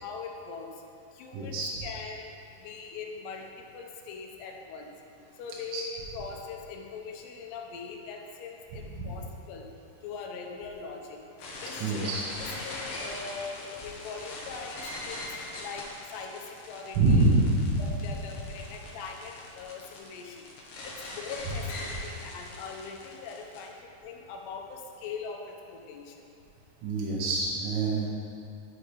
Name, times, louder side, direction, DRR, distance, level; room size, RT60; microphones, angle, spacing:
voice 1, 0.0-0.7 1.1-1.6 1.8-2.3 2.6-3.5 3.7-4.9 5.4-9.7 10.0-11.2 11.6-15.3 15.6-17.3 17.8-20.5 20.8-23.8 24.0-26.3, left 5 dB, 90° left, 1 dB, 2.9 m, -41 dB
voice 2, 1.3-1.7 5.7-5.8 9.0-9.1 11.8-12.2 17.0-17.8 26.8-28.1, right 2 dB, 70° right, -4 dB, 2.2 m, -25 dB
sound 1, 11.4-23.6, left 2 dB, 65° left, 2.3 m, -41 dB
12.0 x 5.3 x 3.3 m, 2.9 s
omnidirectional pair, 4.7 m